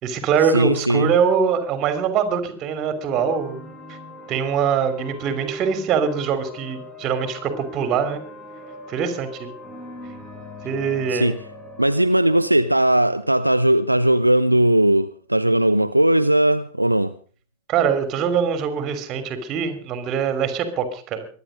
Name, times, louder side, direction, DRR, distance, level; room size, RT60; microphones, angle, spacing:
voice 1, 0.0-3.6 3.9-4.0 4.3-8.2 8.9-9.5 10.6-11.3 17.7-21.3, right 7 dB, 35° right, 3.1 m, -23 dB
voice 2, 0.5-1.1 11.1-11.4 11.8-17.1, right 1 dB, 85° right, 0.6 m, -18 dB
sound 1, 3.1-14.7, equal, 15° left, 4.6 m, -40 dB
23.0 x 10.0 x 5.2 m
figure-of-eight pair, 90°, 0 cm